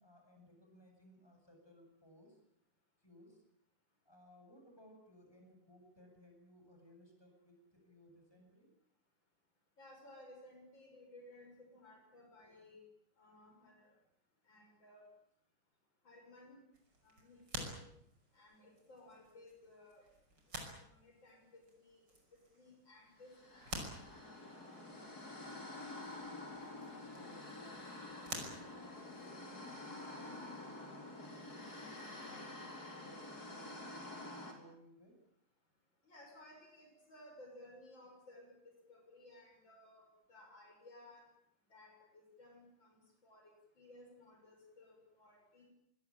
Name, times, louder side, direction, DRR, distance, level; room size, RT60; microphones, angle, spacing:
voice 1, 0.0-2.4 3.0-3.4 4.0-8.7 27.1-31.4 32.0-35.1, equal, 10° left, 2 dB, 8.0 m, -62 dB
voice 2, 9.8-12.8 13.2-13.9 14.5-15.1 16.0-16.6 17.0-17.8 18.3-20.1 20.6-22.0 22.5-24.5 36.0-41.3 41.7-45.7, left 1 dB, 85° left, 2 dB, 7.2 m, -59 dB
sound 1, 16.7-29.6, right 1 dB, 65° right, 6.4 m, -51 dB
sound 2, 23.3-34.5, left 2 dB, 55° left, 4.8 m, -48 dB
24.5 x 21.0 x 8.9 m, 0.73 s
omnidirectional pair, 2.0 m